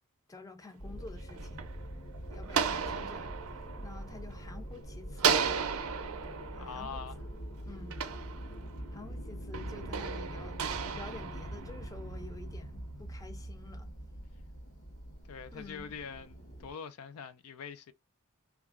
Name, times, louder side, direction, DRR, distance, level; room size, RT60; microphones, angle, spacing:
voice 1, 0.3-1.7 2.3-3.3 3.8-5.4 6.5-7.0 7.7-8.0 8.9-10.6 10.9-13.9 15.5-16.0, left 3 dB, 15° left, 0.5 m, -49 dB
sound 1, 0.8-16.7, equal, 60° left, 0.9 m, -44 dB
sound 2, 1.0-4.7 5.2-8.9 9.5-12.2, right 7 dB, 65° right, 0.5 m, -35 dB
voice 2, 6.6-7.2 15.2-17.9, left 6 dB, 75° left, 0.4 m, -44 dB
2.9 x 2.4 x 3.5 m
head